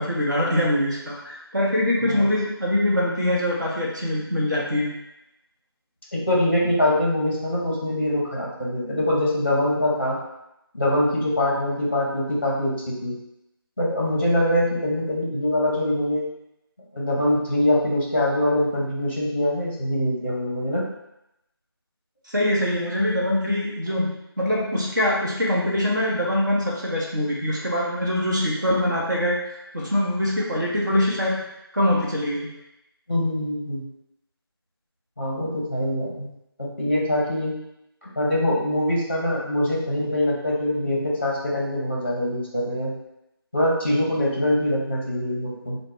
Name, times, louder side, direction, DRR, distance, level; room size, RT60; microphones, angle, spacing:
voice 1, 0.0-4.9 22.3-29.4 29.7-31.4 31.7-32.5, left 1 dB, 50° right, -4 dB, 0.9 m, -23 dB
voice 2, 6.1-10.2 10.7-13.2 13.8-16.3 16.9-20.8 33.1-33.8 35.2-36.3 36.6-37.5 38.0-42.9 43.5-45.8, left 1 dB, 30° left, -4 dB, 0.7 m, -23 dB
3.0 x 2.1 x 3.2 m, 0.85 s
figure-of-eight pair, 180°, 13 cm